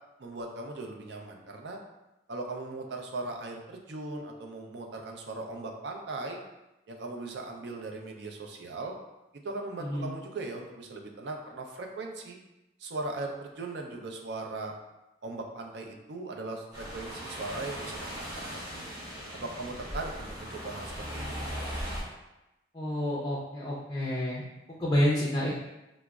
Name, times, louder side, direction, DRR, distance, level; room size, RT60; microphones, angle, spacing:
voice 1, 0.2-1.8 2.3-6.4 6.9-8.9 9.4-12.4 12.8-14.7 15.2-18.9 19.3-21.4, right 2 dB, 75° right, 2 dB, 0.5 m, -39 dB
sound 1, 16.7-22.0, equal, 20° right, 0.8 m, -38 dB
voice 2, 22.7-25.5, equal, 20° left, -4 dB, 0.4 m, -29 dB
4.9 x 2.0 x 2.3 m, 0.97 s
head